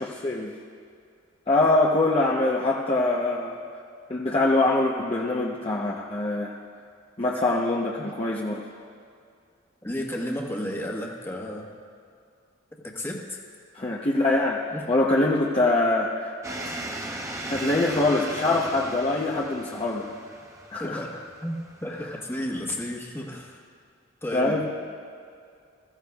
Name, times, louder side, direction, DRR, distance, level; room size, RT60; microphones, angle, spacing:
voice 1, 0.0-0.5 1.5-3.6 4.1-6.5 7.2-8.6 13.7-16.4 16.6-16.7 17.5-20.1 20.7-21.0 24.3-24.6, left 2 dB, 30° left, -3 dB, 0.8 m, -24 dB
voice 2, 9.8-11.7 12.8-13.4 14.7-14.8 20.8-23.6 24.2-24.7, left 1 dB, 10° left, -1 dB, 1.3 m, -33 dB
sound 1, 16.4-22.9, right 1 dB, 15° right, 0.8 m, -37 dB
21.5 x 14.5 x 2.4 m, 2.3 s
head